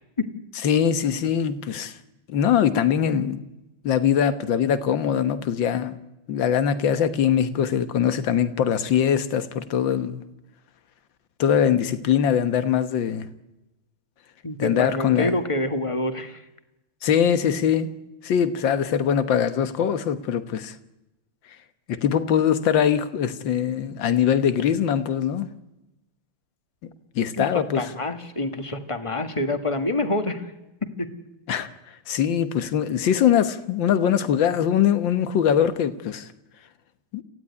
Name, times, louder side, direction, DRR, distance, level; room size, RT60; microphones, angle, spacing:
voice 1, 0.6-1.9 2.3-3.4 3.8-5.9 6.3-10.2 11.4-13.3 14.6-15.4 17.0-17.9 18.2-20.7 21.9-25.5 27.2-27.8 31.5-31.7 32.1-36.3 37.1-37.2, left 8 dB, 70° left, 1.9 m, -22 dB
voice 2, 14.4-16.4 27.3-30.5 30.8-31.1, left 2 dB, 15° left, 1.5 m, -27 dB
27.0 x 16.0 x 9.7 m
omnidirectional pair, 2.2 m